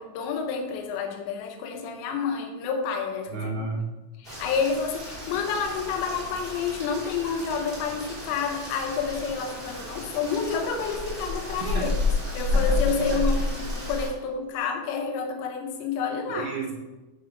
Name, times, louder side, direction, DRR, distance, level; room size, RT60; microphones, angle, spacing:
voice 1, 0.0-3.4 4.2-11.9 12.3-16.5, left 5 dB, 75° left, 2 dB, 2.9 m, -29 dB
voice 2, 3.3-3.9 11.7-11.9 12.5-13.2 16.3-16.7, right 4 dB, 80° right, -1 dB, 2.5 m, -32 dB
Rain, 4.2-14.1, left 2 dB, 25° right, 1.1 m, -31 dB
7.0 x 4.2 x 5.0 m, 1.1 s
omnidirectional pair, 5.8 m